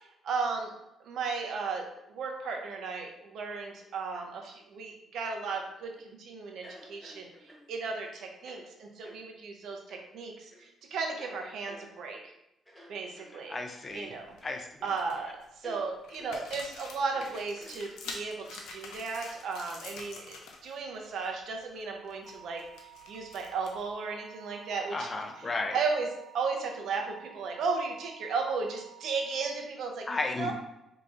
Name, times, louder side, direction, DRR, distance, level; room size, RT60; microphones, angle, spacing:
voice 1, 0.2-0.7 1.0-12.3 12.9-13.6 13.9-14.4 14.8-25.1 25.7-26.1 26.3-30.1 30.4-30.5, right 4 dB, 75° right, 2 dB, 0.7 m, -35 dB
sound 1, 5.4-6.0 6.6-7.7 8.4-8.7 9.0-9.2 9.9-10.1 10.5-10.7 11.2-12.3 12.7-13.4 14.3-14.8 15.1-15.2 15.6-15.8 16.2-16.4 17.0-18.1, equal, 10° left, 1.1 m, -51 dB
voice 2, 13.5-14.1 14.4-14.8 24.9-25.8 30.1-30.5, left 3 dB, 30° left, 3 dB, 0.6 m, -33 dB
sound 2, 13.9-14.4 14.8-15.5 16.0-20.7 21.0-21.3 21.6-23.9, left 3 dB, 85° left, 0.6 m, -46 dB
sound 3, 22.2-29.5, right 12 dB, 45° right, 0.8 m, -53 dB
4.8 x 2.9 x 2.6 m, 0.87 s
cardioid pair, 90°, 0 cm